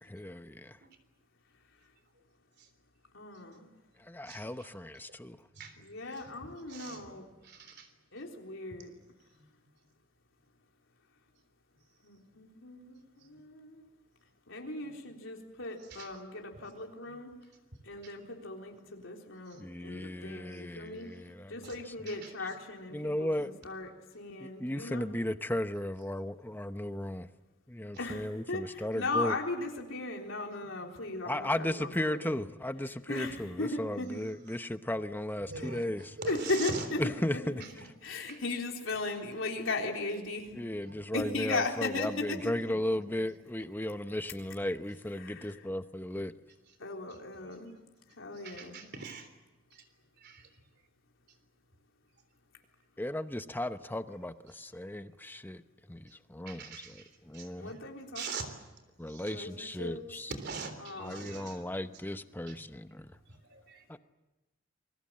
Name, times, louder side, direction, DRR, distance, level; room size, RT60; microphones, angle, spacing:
voice 1, 0.0-0.8 4.0-5.4 6.1-6.2 19.6-21.7 22.0-22.1 22.9-23.5 24.4-27.3 27.7-29.4 31.2-36.1 37.0-37.6 40.6-46.3 53.0-55.6 55.9-57.7 59.0-60.3 61.0-63.1 63.9-64.0, left 1 dB, 10° left, 0.8 m, -36 dB
voice 2, 3.1-3.7 5.8-7.3 8.1-8.9 12.0-13.9 14.5-17.3 17.8-21.1 21.5-25.1 28.0-32.4 33.1-34.2 35.6-35.7 36.3-40.5 41.1-42.8 45.2-45.6 46.8-47.7 48.2-48.9 57.6-58.5 59.3-60.0 60.8-61.9, left 2 dB, 75° left, 3.8 m, -37 dB
voice 3, 4.3-4.7 5.5-5.8 6.7-7.0 7.4-7.9 15.9-16.1 18.0-18.1 19.5-19.6 19.9-20.1 20.5-20.6 21.6-21.8 22.1-22.3 35.5-35.8 36.2-36.9 38.2-38.4 40.9-41.0 48.4-49.3 49.7-49.9 50.2-50.5 56.5-57.1 57.3-57.8 58.1-58.5 59.1-59.2 60.3-61.8 62.5-62.7 63.3-64.0, right 4 dB, 55° right, 3.6 m, -43 dB
28.5 x 22.0 x 7.6 m
head